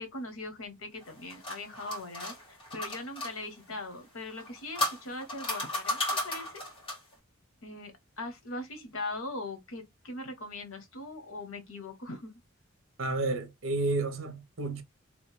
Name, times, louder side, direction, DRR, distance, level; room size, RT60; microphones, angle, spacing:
voice 1, 0.0-6.6 7.6-12.3, left 2 dB, 80° left, 1.0 m, -40 dB
sound 1, 1.0-3.3 4.3-7.1, left 1 dB, 25° left, 1.5 m, -34 dB
voice 2, 13.0-14.8, right 2 dB, 70° right, 0.9 m, -31 dB
3.1 x 2.5 x 3.2 m
head